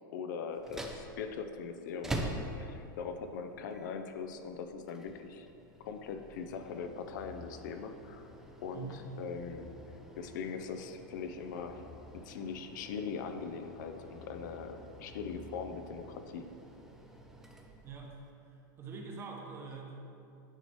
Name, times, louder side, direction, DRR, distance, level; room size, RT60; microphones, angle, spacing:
voice 1, 0.1-5.5 5.8-8.3 8.6-9.7 10.2-11.8 12.1-16.5, left 5 dB, 65° left, 7 dB, 0.5 m, -41 dB
sound 1, 0.5-18.3, right 1 dB, 5° right, 0.4 m, -47 dB
sound 2, 6.5-16.0, left 2 dB, 50° left, 0.8 m, -55 dB
voice 2, 8.7-9.1 17.8-18.1 18.5-19.9, right 4 dB, 25° right, 0 dB, 0.8 m, -44 dB
8.8 x 2.9 x 4.5 m, 2.7 s
supercardioid pair, 140°, 11 cm